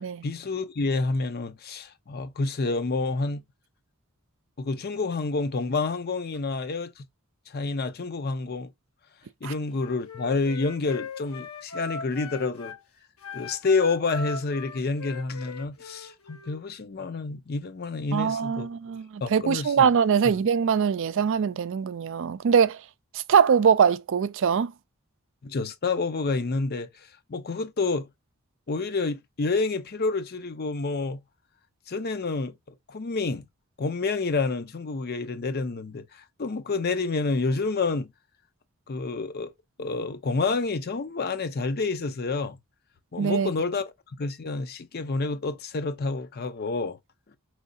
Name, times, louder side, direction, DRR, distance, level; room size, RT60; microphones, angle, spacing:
voice 1, 0.2-3.4 4.6-7.1 7.5-8.7 9.4-12.8 13.3-18.7 19.2-19.9 25.4-28.1 28.7-31.2 31.9-32.5 32.9-33.5 33.8-38.1 38.9-39.5 39.8-42.6 43.1-43.9 44.2-47.0, left 3 dB, 45° left, 0.5 m, -28 dB
Wind instrument woodwind instrument, 9.7-12.8 13.2-16.6, left 4 dB, 75° left, 0.9 m, -39 dB
voice 2, 18.1-22.8 23.1-24.7 43.2-43.5, right 7 dB, 60° right, 0.4 m, -22 dB
4.8 x 3.1 x 2.6 m
head